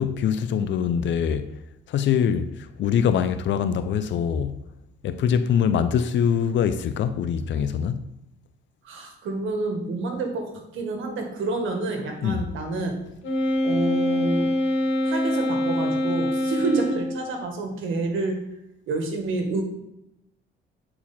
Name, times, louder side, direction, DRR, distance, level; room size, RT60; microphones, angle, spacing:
voice 1, 0.0-1.5 1.9-4.6 5.0-8.0 12.2-12.4, left 7 dB, 70° left, 0.5 m, -23 dB
voice 2, 8.8-12.9 13.6-14.5 15.0-18.5 18.9-19.6, right 3 dB, 80° right, 1.6 m, -28 dB
Wind instrument woodwind instrument, 13.2-17.3, left 1 dB, 85° left, 1.6 m, -24 dB
8.5 x 4.6 x 4.3 m
cardioid pair, 90°, 20 cm